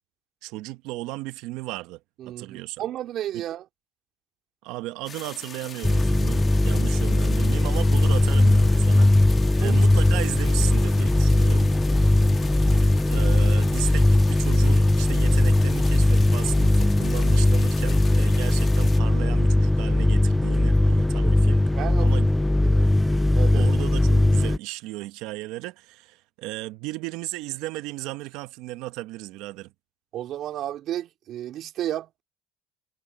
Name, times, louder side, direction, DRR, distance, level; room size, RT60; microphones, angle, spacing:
voice 1, 0.4-2.8 3.3-3.4 4.6-9.1 9.6-11.7 13.1-21.6 22.0-22.3 23.5-29.7, right 19 dB, 75° right, 0.9 m, -35 dB
voice 2, 2.2-3.6 9.6-9.8 21.2-21.3 21.8-22.1 22.6-22.9 23.3-23.7 30.1-32.2, right 12 dB, 55° right, 2.7 m, -32 dB
sound 1, 5.1-19.0, left 6 dB, 35° left, 1.7 m, -41 dB
sound 2, 5.8-24.6, left 1 dB, 10° left, 0.4 m, -19 dB
sound 3, 10.6-16.6, right 5 dB, 25° right, 3.8 m, -50 dB
supercardioid pair, 105°, 0 cm